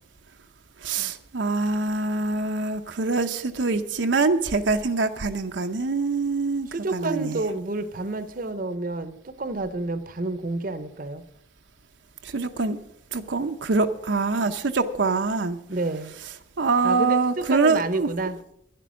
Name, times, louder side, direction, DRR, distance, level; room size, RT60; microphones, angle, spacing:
voice 1, 0.8-7.4 12.2-12.8 13.1-15.6 16.6-18.1, right 3 dB, 80° right, 6 dB, 0.8 m, -24 dB
voice 2, 6.7-11.2 15.7-16.2 16.8-18.4, right 2 dB, 50° right, 12 dB, 0.8 m, -29 dB
11.5 x 11.0 x 6.2 m, 0.75 s
head